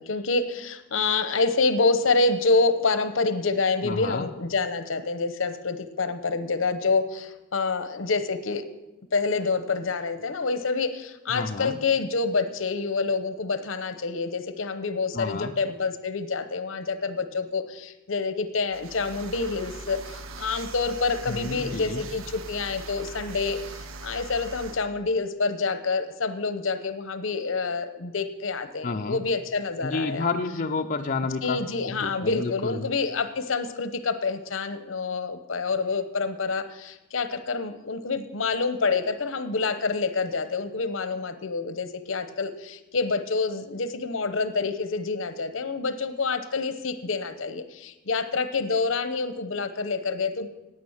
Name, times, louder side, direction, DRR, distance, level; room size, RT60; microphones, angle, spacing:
voice 1, 0.0-8.6 9.1-30.3 31.4-50.5, left 4 dB, 70° left, 11 dB, 0.8 m, -27 dB
voice 2, 3.8-4.3 11.3-11.8 15.1-15.6 21.3-22.0 28.8-29.2 29.8-31.6 31.9-32.9, left 3 dB, 40° left, 3 dB, 0.5 m, -30 dB
sound 1, 18.7-24.9, right 3 dB, 80° right, 0.7 m, -41 dB
9.5 x 9.1 x 7.1 m, 1.0 s
head